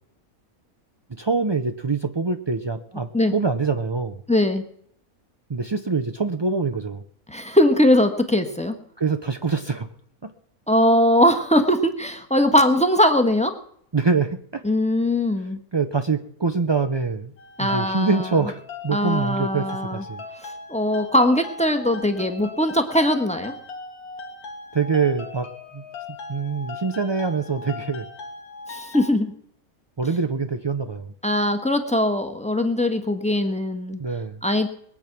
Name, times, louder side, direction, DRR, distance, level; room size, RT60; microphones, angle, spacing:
voice 1, 1.1-4.2 5.5-7.0 9.0-9.9 10.2-10.3 13.9-14.6 15.7-17.3 17.6-20.2 24.7-25.5 25.7-25.8 26.3-28.1 30.0-31.1 34.0-34.4, right 4 dB, 45° right, 8 dB, 0.3 m, -24 dB
voice 2, 4.3-4.6 7.3-8.8 10.7-13.5 14.6-15.6 17.6-18.3 18.9-20.0 20.4-23.5 28.7-29.3 31.2-34.0 34.4-34.7, left 1 dB, 5° left, 7 dB, 1.3 m, -20 dB
sound 1, 17.4-29.1, left 3 dB, 85° left, 2.1 m, -39 dB
21.5 x 8.7 x 6.0 m, 0.66 s
omnidirectional pair, 1.5 m